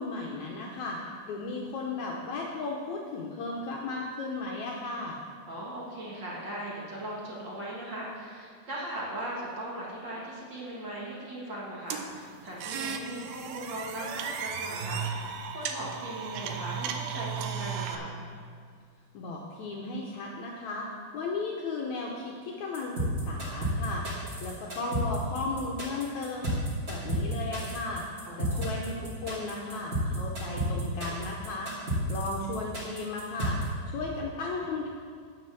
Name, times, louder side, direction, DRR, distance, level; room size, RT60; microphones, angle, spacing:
voice 1, 0.0-5.2 19.1-20.9 21.1-26.5 26.9-31.7 32.1-33.6 33.9-34.9, left 3 dB, 75° left, -1 dB, 1.7 m, -35 dB
voice 2, 5.5-15.2 15.5-18.1 28.2-28.7, right 1 dB, 40° right, -5 dB, 1.7 m, -38 dB
sound 1, 11.9-18.0, right 7 dB, 85° right, 2.7 m, -35 dB
sound 2, 22.7-33.6, right 1 dB, 25° right, 2.2 m, -31 dB
9.1 x 7.5 x 6.8 m, 2.1 s
omnidirectional pair, 4.3 m